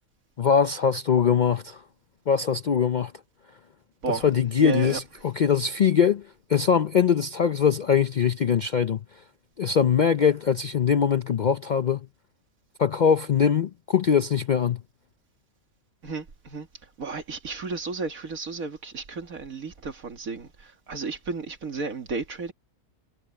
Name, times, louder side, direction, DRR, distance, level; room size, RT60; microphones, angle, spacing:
voice 1, 0.4-1.8 2.3-3.1 4.1-6.2 6.5-9.0 9.6-12.0 12.8-14.8, left 7 dB, 60° left, 0.4 m, -22 dB
voice 2, 4.6-5.0 16.0-16.7 17.0-22.5, right 4 dB, 80° right, 2.5 m, -33 dB
omnidirectional pair, 1.4 m